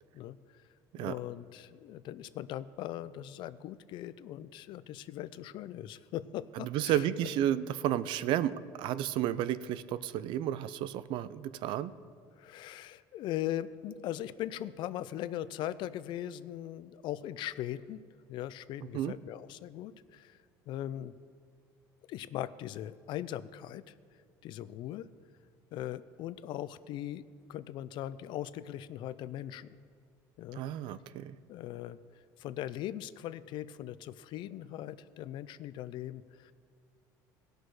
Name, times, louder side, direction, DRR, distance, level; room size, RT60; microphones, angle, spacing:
voice 1, 0.9-7.1 12.4-18.0 18.3-20.4 20.7-21.1 22.1-23.9 24.4-25.1 25.7-27.2 27.5-29.8 30.4-30.6 31.5-32.0 32.4-36.5, left 12 dB, 60° left, 16 dB, 0.4 m, -40 dB
voice 2, 6.6-11.9 18.9-19.1 30.5-31.3, right 11 dB, 65° right, 15 dB, 0.4 m, -32 dB
16.5 x 6.4 x 4.7 m, 2.2 s
supercardioid pair, 100°, 9 cm